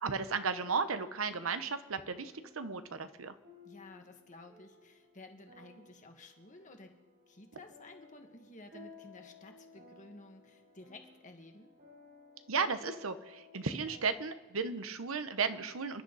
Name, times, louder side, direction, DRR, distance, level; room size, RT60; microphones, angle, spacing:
voice 1, 0.0-3.3 12.5-16.0, right 5 dB, 80° right, 10 dB, 0.9 m, -34 dB
sound 1, 1.0-14.1, left 3 dB, 45° right, 4.0 m, -58 dB
voice 2, 3.6-6.9 7.3-11.7, left 2 dB, 40° left, 4 dB, 1.7 m, -53 dB
29.0 x 11.0 x 4.1 m, 1.1 s
head